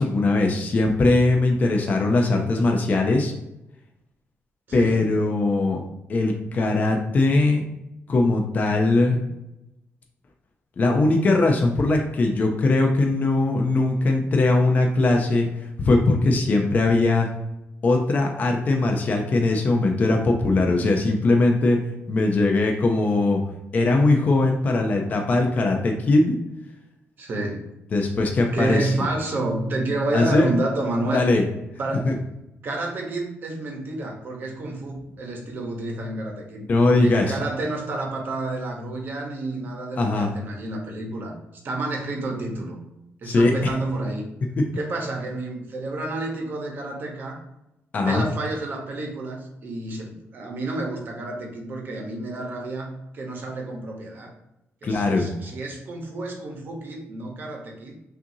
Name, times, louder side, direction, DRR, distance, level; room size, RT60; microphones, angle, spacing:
voice 1, 0.0-3.3 4.7-5.8 6.1-7.6 8.1-9.2 10.8-17.3 17.8-21.8 22.1-23.4 23.7-26.3 27.9-28.9 30.1-30.5 31.1-31.4 32.0-32.1 36.7-37.4 40.0-40.3 43.2-43.7 47.9-48.2 54.8-55.3, left 2 dB, 35° left, 2 dB, 0.5 m, -20 dB
voice 2, 4.7-5.1 27.2-27.7 28.5-31.3 31.8-32.2 32.6-41.3 41.6-42.8 43.2-44.3 44.7-47.4 48.0-54.3 54.8-58.0, right 2 dB, 45° right, 1 dB, 0.9 m, -30 dB
5.6 x 2.6 x 2.7 m, 0.91 s
cardioid pair, 135°, 5 cm